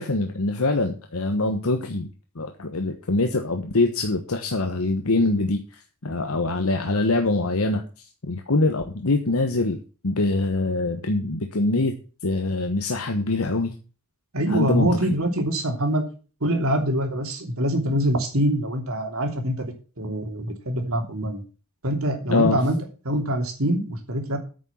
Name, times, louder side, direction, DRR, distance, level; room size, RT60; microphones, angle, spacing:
voice 1, 0.0-7.8 8.3-9.8 10.0-12.0 12.2-13.7 14.5-15.2 22.3-22.6, left 2 dB, 85° left, 5 dB, 1.2 m, -24 dB
voice 2, 14.3-16.0 16.4-19.7 20.0-21.4 21.8-22.7 23.0-24.4, right 1 dB, 75° right, 4 dB, 3.0 m, -24 dB
9.1 x 6.3 x 7.2 m, 0.35 s
head